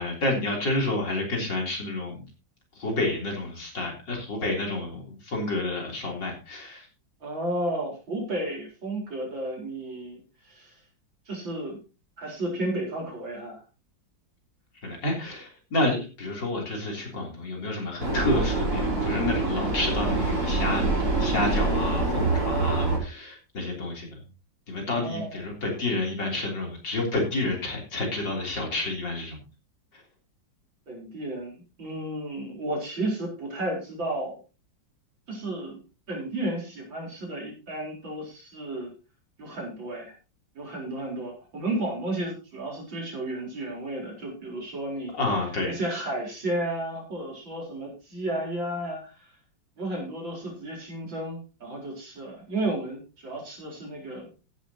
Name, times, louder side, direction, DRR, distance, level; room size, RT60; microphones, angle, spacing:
voice 1, 0.0-2.2 2.8-6.9 14.8-20.9 21.2-24.1 24.7-29.4 45.1-45.7, left 2 dB, 65° left, 0 dB, 4.1 m, -29 dB
voice 2, 7.2-10.2 10.5-10.7 11.3-11.8 12.2-13.6 24.9-25.4 30.9-34.4 35.3-38.9 39.4-40.1 40.5-45.1 45.7-49.3 49.8-54.3, right 1 dB, 80° right, -1 dB, 5.0 m, -33 dB
Vehicle, 18.0-23.0, right 2 dB, 50° right, 4.7 m, -25 dB
15.0 x 11.0 x 2.9 m, 0.31 s
omnidirectional pair, 2.1 m